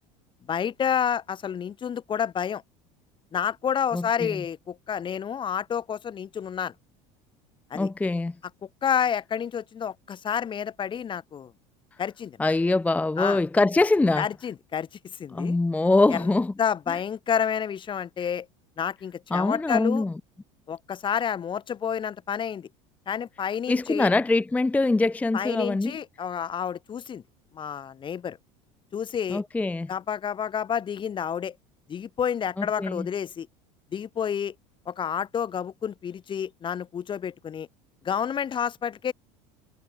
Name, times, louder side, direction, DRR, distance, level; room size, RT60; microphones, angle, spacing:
voice 1, 0.5-2.6 3.3-6.7 7.7-7.9 8.8-11.5 12.0-12.4 13.2-13.4 14.2-14.9 15.1-15.6 16.1-16.3 16.6-18.5 18.8-20.0 20.7-22.7 23.1-24.1 25.3-27.2 27.5-28.4 28.9-29.4 29.9-31.6 31.9-33.5 33.9-34.5 34.9-37.7 38.0-39.1, left 8 dB, 30° left, 0.9 m, -29 dB
voice 2, 3.9-4.4 7.7-8.3 12.4-14.3 15.3-16.5 19.3-20.1 23.7-26.0 29.3-29.9 32.6-33.1, left 2 dB, 10° left, 0.6 m, -23 dB
supercardioid pair, 105°, 16 cm